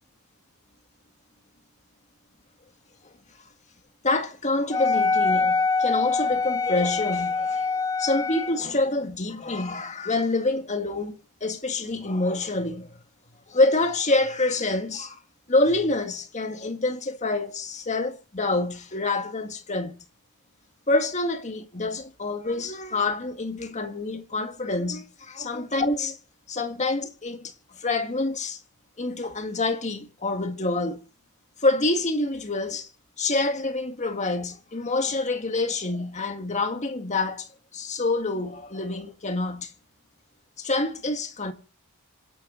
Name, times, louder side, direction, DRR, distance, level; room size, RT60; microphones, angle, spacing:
voice 1, 4.0-13.0 13.5-15.2 15.5-20.0 20.9-25.1 25.4-26.2 26.5-28.6 29.0-31.0 31.6-32.9 33.2-39.7 40.6-41.5, left 2 dB, 35° left, 1.9 m, -27 dB
Wind instrument woodwind instrument, 4.7-8.6, left 4 dB, 15° left, 0.7 m, -24 dB
26.0 x 10.5 x 4.0 m
head